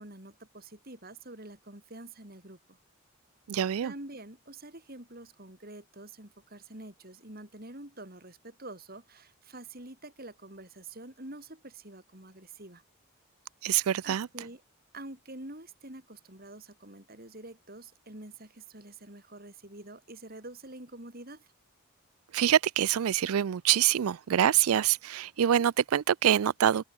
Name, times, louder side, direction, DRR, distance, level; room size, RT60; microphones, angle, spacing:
voice 1, 0.0-2.8 3.8-12.8 14.0-14.6 14.9-21.5 25.6-25.7, right 2 dB, 45° right, 4.3 m, -47 dB
voice 2, 3.5-3.9 13.6-14.3 22.3-26.8, right 10 dB, 85° right, 0.4 m, -25 dB
open air
head